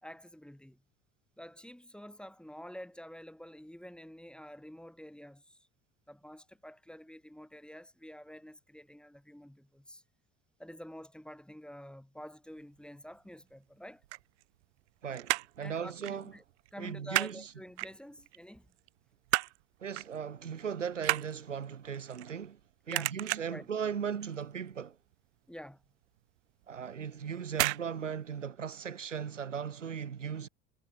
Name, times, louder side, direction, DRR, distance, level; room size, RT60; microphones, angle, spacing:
voice 1, 0.0-0.8 1.4-5.7 6.1-10.0 10.6-14.0 15.6-16.4 16.7-18.7 22.9-23.1 23.5-23.7 25.5-25.8, equal, 5° left, 1.5 m, -48 dB
sound 1, 13.9-14.9 15.1-15.6 16.0-16.2 16.5-17.4 17.8-18.4 18.8-19.6 20.0-20.2 20.5-22.6 22.9-23.7 24.1-24.4 24.7-24.8 25.1-25.2 25.7-25.8 26.6-26.9 27.5-27.9 28.1-28.2, right 20 dB, 65° right, 0.5 m, -32 dB
voice 2, 15.0-16.3 16.8-17.4 19.8-22.6 22.9-25.0 26.7-30.5, right 7 dB, 85° right, 1.1 m, -37 dB
figure-of-eight pair, 65°, 36 cm